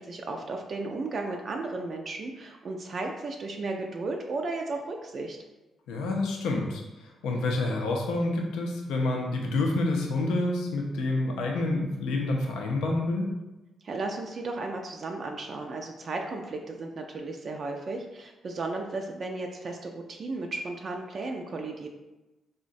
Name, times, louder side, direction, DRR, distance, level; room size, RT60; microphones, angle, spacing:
voice 1, 0.0-5.4 13.8-21.9, right 3 dB, 55° right, 2 dB, 0.3 m, -34 dB
voice 2, 5.9-13.3, left 2 dB, 90° left, 0 dB, 0.4 m, -28 dB
3.7 x 2.1 x 2.5 m, 1.0 s
cardioid pair, 70°, 0 cm